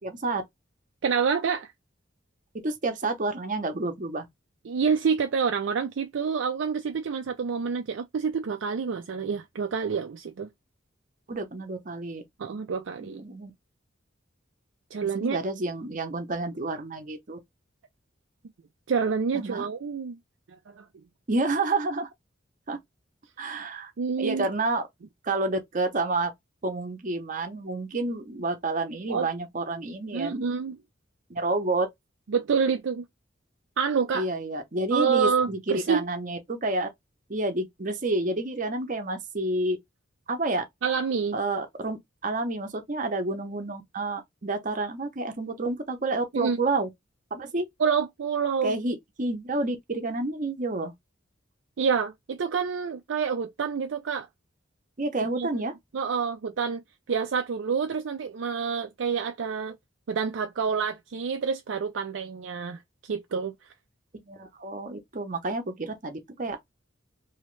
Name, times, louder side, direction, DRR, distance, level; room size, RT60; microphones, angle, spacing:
voice 1, 0.0-0.4 2.6-4.2 11.3-12.2 12.5-12.6 13.0-13.5 15.0-17.4 19.3-19.7 21.3-22.1 22.7-22.8 23.4-23.9 24.2-24.9 25.2-26.3 26.6-30.5 31.3-31.9 34.1-36.9 37.3-39.8 40.3-40.6 41.3-46.9 47.3-47.6 48.6-50.9 55.0-55.7 64.3-66.6, right 2 dB, 45° right, 0.7 m, -29 dB
voice 2, 1.0-1.7 4.7-10.5 12.4-13.2 14.9-15.4 18.9-20.2 20.7-20.8 24.0-24.5 29.1-29.3 30.1-30.8 32.3-33.0 33.8-34.3 34.9-36.0 40.8-41.4 46.3-46.6 47.8-48.7 51.8-54.3 55.3-55.6 55.9-56.8 57.1-59.8 60.1-63.5, right 6 dB, 75° right, 0.4 m, -27 dB
3.0 x 2.7 x 3.1 m
head